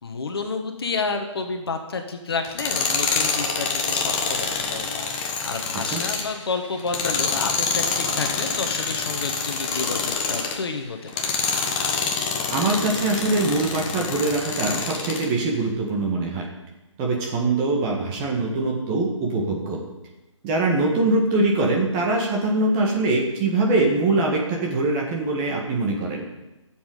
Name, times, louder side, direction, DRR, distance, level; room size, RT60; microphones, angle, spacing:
voice 1, 0.0-11.2, left 4 dB, 50° left, 5 dB, 1.6 m, -30 dB
Tools, 2.4-10.6 11.1-15.3, left 5 dB, 15° left, 1.0 m, -26 dB
voice 2, 12.5-16.5 17.0-19.8 20.4-26.2, right 2 dB, 15° right, -1 dB, 1.7 m, -23 dB
16.0 x 7.6 x 5.1 m, 0.99 s
figure-of-eight pair, 150°, 17 cm